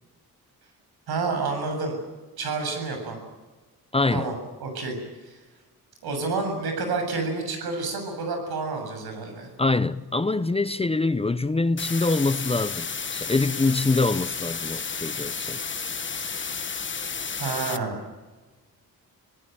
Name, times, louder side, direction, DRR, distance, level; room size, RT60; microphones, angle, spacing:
voice 1, 1.1-2.0 2.4-3.2 4.1-4.3 4.6-5.0 5.2-5.4 6.0-9.5 16.4-16.5 17.4-18.0, right 3 dB, 80° right, 7.6 m, -29 dB
voice 2, 3.9-4.3 9.6-15.6, left 3 dB, 15° left, 0.7 m, -24 dB
sound 1, 11.8-17.8, left 5 dB, 30° left, 1.2 m, -32 dB
26.5 x 18.0 x 9.2 m
cardioid pair, 100°, 37 cm